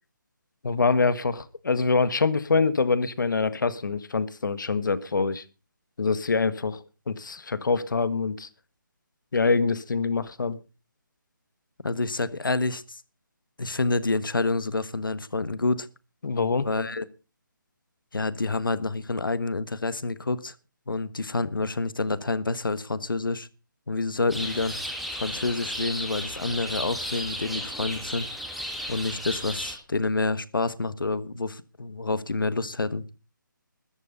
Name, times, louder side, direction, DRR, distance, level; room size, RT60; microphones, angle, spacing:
voice 1, 0.6-5.4 6.0-6.8 7.1-8.5 9.3-10.6 16.2-16.7, left 4 dB, 70° left, 1.6 m, -25 dB
voice 2, 11.8-13.0 13.6-15.9 16.6-17.1 18.1-20.5 20.9-23.5 23.9-24.8 25.1-28.3 28.9-33.0, left 3 dB, 90° left, 1.4 m, -28 dB
sound 1, 24.3-29.8, equal, ahead, 2.0 m, -34 dB
13.5 x 12.5 x 5.5 m
figure-of-eight pair, 160°, 11 cm